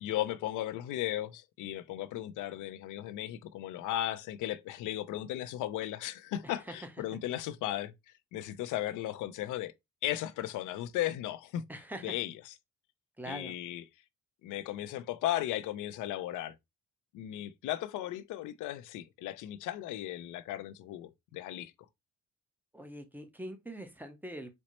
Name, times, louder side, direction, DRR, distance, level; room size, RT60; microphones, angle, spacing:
voice 1, 0.0-7.9 8.3-9.7 10.0-11.6 12.0-12.3 13.3-13.8 14.4-16.5 17.1-21.7, left 13 dB, 85° left, 0.5 m, -36 dB
voice 2, 6.4-6.9 11.7-12.2 13.2-13.6 22.7-24.5, right 1 dB, 5° right, 0.7 m, -43 dB
4.2 x 2.0 x 3.0 m
cardioid pair, 90°, 30 cm